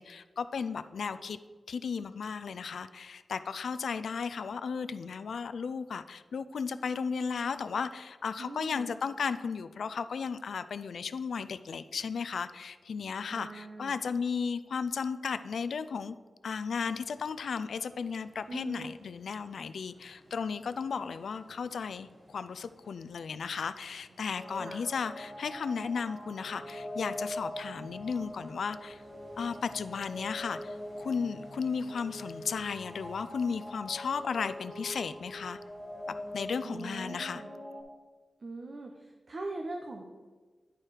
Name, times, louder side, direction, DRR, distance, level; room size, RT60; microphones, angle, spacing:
voice 1, 0.0-1.4 1.7-16.2 16.4-29.0 29.4-35.6 36.3-37.4, left 5 dB, 85° left, 12 dB, 0.3 m, -35 dB
voice 2, 8.4-8.9 13.3-14.0 18.5-18.9 24.6-24.8 36.6-37.5 38.4-40.0, right 2 dB, 50° right, 2 dB, 0.7 m, -41 dB
sound 1, 16.9-36.5, equal, 65° right, 2.4 m, -60 dB
sound 2, 24.3-37.8, left 1 dB, 15° left, 1.8 m, -43 dB
10.5 x 4.5 x 4.8 m, 1.4 s
wide cardioid pair, 115°, 0 cm